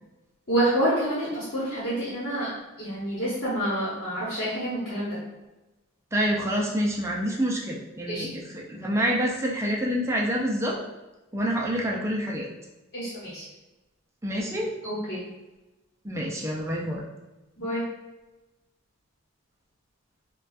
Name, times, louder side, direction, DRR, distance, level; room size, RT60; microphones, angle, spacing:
voice 1, 0.5-2.5 2.8-5.2 8.1-8.2 12.9-13.4 14.8-15.2 17.6-17.8, right 1 dB, 55° left, -8 dB, 1.1 m, -28 dB
voice 2, 6.1-10.8 11.3-12.5 14.2-14.7 16.0-17.0, equal, 15° right, -3 dB, 0.5 m, -27 dB
5.0 x 2.3 x 2.5 m, 1.1 s
head